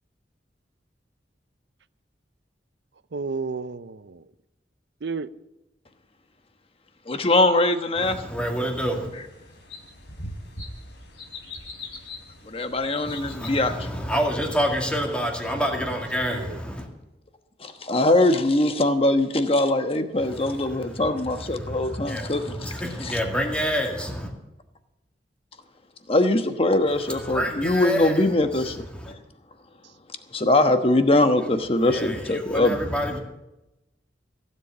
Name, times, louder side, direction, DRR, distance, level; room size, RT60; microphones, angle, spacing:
voice 1, 3.1-4.2 5.0-5.3 15.5-15.7 16.3-16.6, right 4 dB, 75° right, 15 dB, 0.6 m, -32 dB
voice 2, 7.1-8.2 12.5-13.7 17.6-22.5 23.0-23.2 26.1-28.8 30.3-32.8, left 2 dB, 35° left, 8 dB, 1.1 m, -22 dB
voice 3, 8.0-9.1 13.0-16.9 20.2-20.9 21.3-24.3 27.1-28.2 28.9-29.1 31.8-33.2, equal, 5° left, 1 dB, 2.2 m, -28 dB
sound 1, 9.1-15.2, left 2 dB, 80° left, 3.4 m, -42 dB
16.0 x 7.7 x 8.4 m, 0.95 s
head